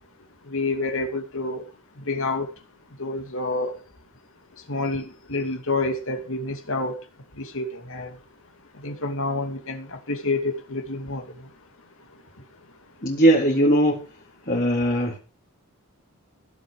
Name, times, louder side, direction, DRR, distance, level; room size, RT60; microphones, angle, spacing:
voice 1, 0.5-1.6 2.1-2.5 3.0-3.8 4.7-7.0 7.4-8.1 8.8-11.2, left 2 dB, 65° left, 4 dB, 2.7 m, -28 dB
voice 2, 13.0-14.0 14.5-15.2, right 1 dB, 40° left, -3 dB, 3.7 m, -19 dB
16.5 x 8.3 x 5.2 m, 0.34 s
head